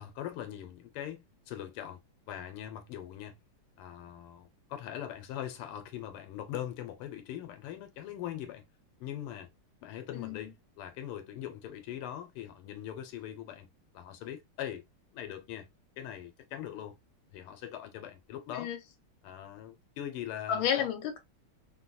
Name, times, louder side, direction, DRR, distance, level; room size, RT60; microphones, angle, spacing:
voice 1, 0.0-2.0 2.3-3.4 3.8-8.6 9.0-9.5 9.8-13.7 13.9-14.8 15.1-15.7 16.0-17.0 17.3-18.7 19.2-20.9, left 11 dB, 90° left, 1.6 m, -41 dB
voice 2, 10.1-10.5 18.5-18.8 20.5-21.2, left 9 dB, 75° left, 1.5 m, -31 dB
3.8 x 2.3 x 2.5 m
omnidirectional pair, 2.4 m